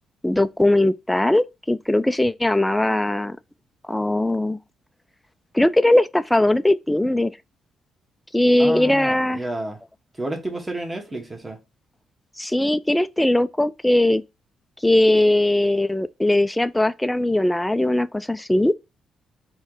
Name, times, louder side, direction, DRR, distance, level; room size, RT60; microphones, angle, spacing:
voice 1, 0.2-3.4 3.9-4.6 5.5-7.3 8.3-9.4 12.4-14.2 14.8-18.7, left 1 dB, 5° left, 0.3 m, -19 dB
voice 2, 8.6-9.8 10.2-11.6, right 1 dB, 15° right, 1.3 m, -30 dB
4.3 x 3.0 x 3.8 m
cardioid pair, 90°, 0 cm